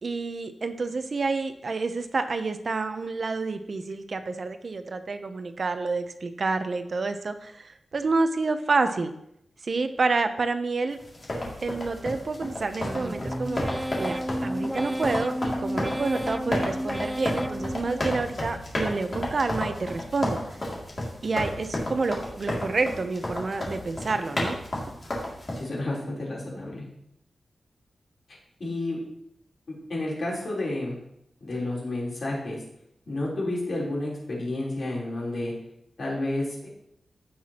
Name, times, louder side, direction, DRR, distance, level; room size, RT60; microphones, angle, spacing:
voice 1, 0.0-9.1 9.6-11.0 11.6-13.6 14.0-20.4 21.2-24.6, right 3 dB, 50° right, 9 dB, 0.6 m, -28 dB
sound 1, 11.1-25.6, left 1 dB, 40° left, 2.4 m, -32 dB
sound 2, 12.8-18.7 19.1-19.7 20.2-20.8 21.3-21.9 22.4-23.0 23.5-24.0, equal, 5° right, 0.4 m, -34 dB
voice 2, 25.5-26.8 28.6-29.0 29.7-31.0 31.4-32.6 33.1-35.5 36.0-36.7, left 2 dB, 55° left, -4 dB, 3.6 m, -30 dB
15.5 x 5.9 x 2.9 m, 0.76 s
wide cardioid pair, 155°, 0 cm